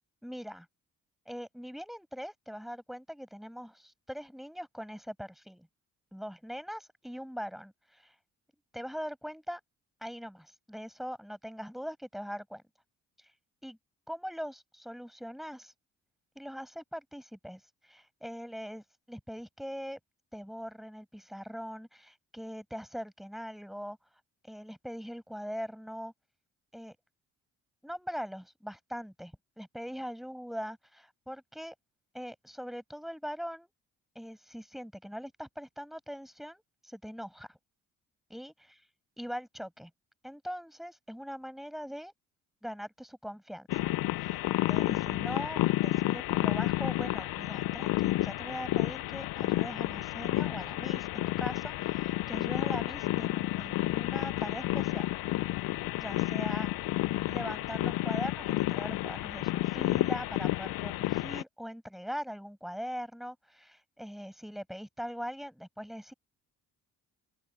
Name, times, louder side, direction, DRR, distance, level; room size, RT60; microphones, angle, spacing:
voice 1, 0.2-0.7 1.3-5.7 6.1-8.2 8.7-9.6 10.0-12.6 13.6-13.8 14.1-15.7 16.4-20.0 20.3-24.0 24.4-26.1 26.7-27.0 27.8-31.7 32.1-33.7 34.2-37.6 38.3-38.5 39.2-39.9 40.2-42.1 42.6-44.4 44.7-55.1 56.0-56.7 57.3-66.1, equal, ahead, 6.8 m, -41 dB
sound 1, 43.7-61.4, left 18 dB, 65° left, 0.5 m, -31 dB
open air
supercardioid pair, 55°, 38 cm